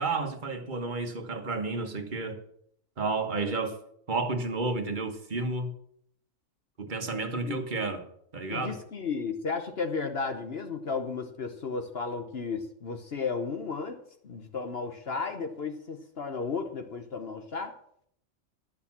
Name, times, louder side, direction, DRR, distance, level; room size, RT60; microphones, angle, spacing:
voice 1, 0.0-2.4 3.0-3.8 4.1-5.7 6.8-8.0 8.3-8.8, right 3 dB, 35° right, 5 dB, 1.4 m, -31 dB
voice 2, 8.5-14.0 14.2-17.7, left 5 dB, 50° left, 6 dB, 1.1 m, -34 dB
11.0 x 6.9 x 7.3 m, 0.68 s
omnidirectional pair, 1.4 m